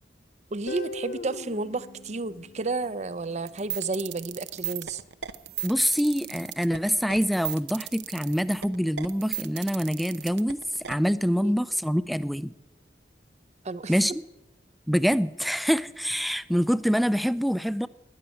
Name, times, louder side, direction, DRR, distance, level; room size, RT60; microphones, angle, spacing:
voice 1, 0.5-5.0 11.4-11.5 13.6-14.0, right 3 dB, 40° right, 16 dB, 0.7 m, -31 dB
Guitar, 0.7-3.6, left 2 dB, 55° left, 0.7 m, -40 dB
sound 1, 3.5-10.9, right 12 dB, 75° right, 0.8 m, -35 dB
voice 2, 5.6-10.6 10.9-12.5 13.9-14.2 14.9-17.9, equal, ahead, 16 dB, 0.4 m, -25 dB
13.0 x 10.5 x 10.0 m, 0.99 s
head